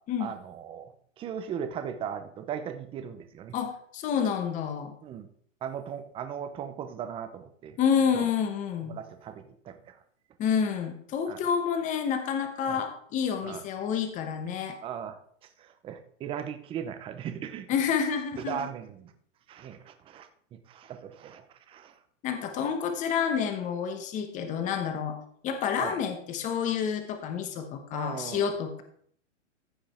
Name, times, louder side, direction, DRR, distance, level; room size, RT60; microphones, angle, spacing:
voice 1, 0.2-0.9 1.2-3.5 5.0-5.3 5.6-7.8 8.1-8.3 8.9-10.0 11.3-11.4 12.7-12.8 13.4-13.6 14.8-15.2 15.6-17.7 18.3-19.1 19.5-21.9 25.8-26.0 27.9-28.5, right 8 dB, 15° right, 8 dB, 0.7 m, -38 dB
voice 2, 3.5-4.9 7.8-8.9 10.4-14.8 17.7-18.7 22.2-25.2 25.4-28.8, left 7 dB, 20° left, 6 dB, 1.1 m, -29 dB
15.0 x 5.2 x 4.4 m, 0.62 s
hypercardioid pair, 155°, 37 cm